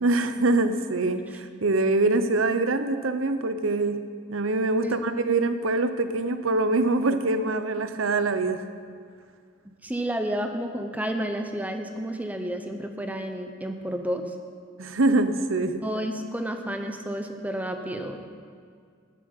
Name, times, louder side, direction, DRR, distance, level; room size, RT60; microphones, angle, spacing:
voice 1, 0.0-8.6 14.8-15.8, right 2 dB, 85° right, 10 dB, 0.8 m, -24 dB
voice 2, 9.8-14.2 15.8-18.2, right 1 dB, 10° right, 5 dB, 0.9 m, -31 dB
13.0 x 7.3 x 9.0 m, 2.1 s
head